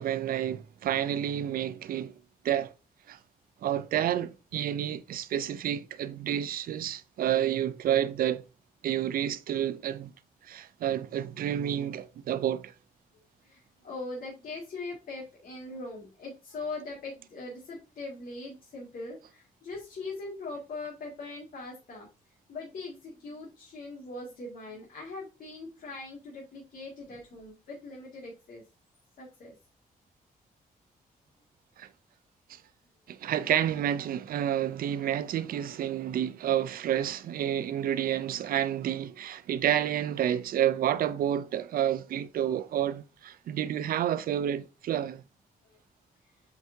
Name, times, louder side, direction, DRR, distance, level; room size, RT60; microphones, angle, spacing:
voice 1, 0.0-2.1 2.4-2.7 3.1-3.2 3.6-8.4 8.8-10.1 10.5-12.7 31.8-31.9 32.5-32.6 33.1-45.2, right 10 dB, 80° right, 0.5 m, -29 dB
voice 2, 13.4-22.1 22.5-28.6 29.2-29.5 45.6-45.8, left 3 dB, 70° left, 2.2 m, -41 dB
8.1 x 4.8 x 2.7 m
wide cardioid pair, 140°, 15 cm